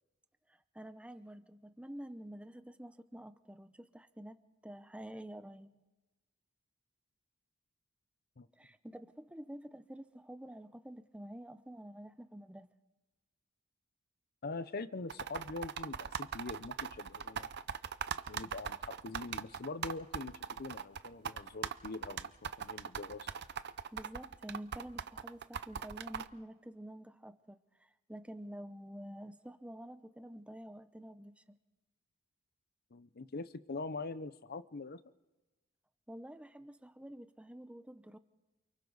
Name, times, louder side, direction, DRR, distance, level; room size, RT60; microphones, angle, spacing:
voice 1, 0.5-5.7 8.5-12.7 23.9-31.6 36.1-38.2, right 1 dB, 5° right, 11 dB, 0.7 m, -49 dB
voice 2, 14.4-17.5 18.3-23.3 32.9-35.0, left 3 dB, 50° left, 14 dB, 0.7 m, -43 dB
sound 1, 15.1-26.3, right 7 dB, 55° right, 0.7 m, -40 dB
28.5 x 25.0 x 4.0 m, 1.1 s
head